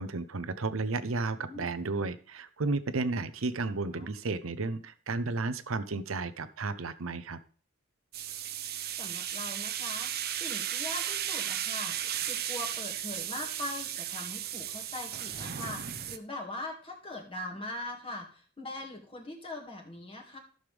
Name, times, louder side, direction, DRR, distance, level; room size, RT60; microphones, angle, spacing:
voice 1, 0.0-7.4, right 3 dB, 90° right, 13 dB, 0.8 m, -33 dB
sound 1, 8.1-16.2, right 10 dB, 50° right, 0.7 m, -35 dB
voice 2, 9.0-10.1 10.4-12.0 12.2-20.4, left 2 dB, 25° left, 0 dB, 2.1 m, -41 dB
13.5 x 6.6 x 3.5 m, 0.42 s
head